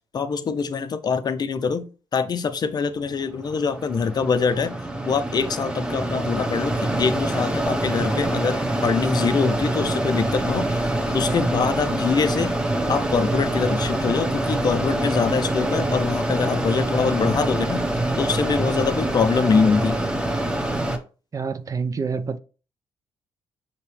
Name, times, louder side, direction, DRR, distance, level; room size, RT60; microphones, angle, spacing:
voice 1, 0.1-1.8 2.1-4.7 5.0-10.7 11.1-12.5 12.9-17.8 18.2-20.0, left 5 dB, 45° left, 0.5 m, -24 dB
Mechanisms, 3.0-21.0, right 1 dB, 10° right, 0.9 m, -25 dB
voice 2, 21.3-22.4, right 5 dB, 35° right, 0.4 m, -27 dB
5.8 x 2.8 x 3.2 m
supercardioid pair, 55°, 9 cm